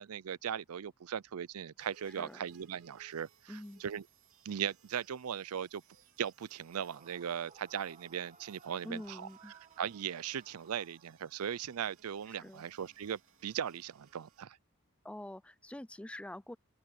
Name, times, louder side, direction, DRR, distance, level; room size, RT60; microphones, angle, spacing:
voice 1, 0.0-4.0 4.4-5.8 6.2-9.3 9.8-14.6, right 8 dB, 85° right, 0.5 m, -38 dB
sound 1, 1.8-14.5, right 6 dB, 65° right, 3.3 m, -65 dB
voice 2, 2.1-2.5 3.5-3.8 8.8-9.5 12.3-12.6 15.0-16.6, left 1 dB, 5° left, 0.4 m, -46 dB
Yell / Screaming, 6.7-11.6, right 5 dB, 35° right, 1.6 m, -60 dB
open air
head